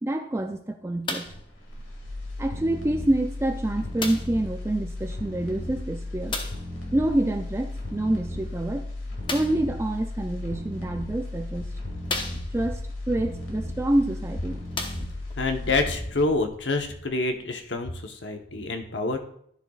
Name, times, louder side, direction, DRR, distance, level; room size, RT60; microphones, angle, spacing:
voice 1, 0.0-1.3 2.4-6.4 6.9-8.9 9.3-11.7 12.5-14.7, right 1 dB, 15° right, 5 dB, 0.4 m, -27 dB
sound 1, 1.0-1.5 2.4-2.5 4.0-4.4 6.3-6.7 9.2-9.7 10.7-10.8 11.4-11.5 12.0-12.8 14.0-14.1 14.7-15.4 16.2-16.3, left 3 dB, 25° left, 0.9 m, -33 dB
sound 2, 1.2-17.3 17.7-17.8, left 2 dB, 85° left, 2.3 m, -35 dB
voice 2, 15.4-19.2, left 3 dB, 65° left, 5 dB, 1.0 m, -27 dB
13.0 x 6.8 x 2.4 m, 0.68 s
head